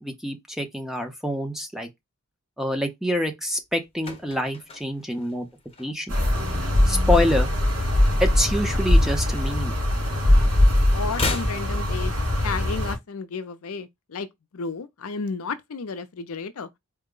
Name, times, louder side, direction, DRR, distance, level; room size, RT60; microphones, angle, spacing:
voice 1, 0.0-1.9 2.6-5.5 5.8-6.1 6.9-7.5 8.2-9.8, left 1 dB, ahead, 0.6 m, -26 dB
sound 1, 3.6-6.3 6.6-6.9 7.2-8.6 8.9-10.3 10.5-12.6 12.9-13.0, left 3 dB, 25° left, 0.8 m, -35 dB
sound 2, 6.1-13.0, left 1 dB, 80° right, 2.9 m, -21 dB
voice 2, 10.9-12.1 12.4-14.3 14.5-16.7, left 4 dB, 70° left, 0.5 m, -32 dB
4.5 x 2.1 x 3.7 m
head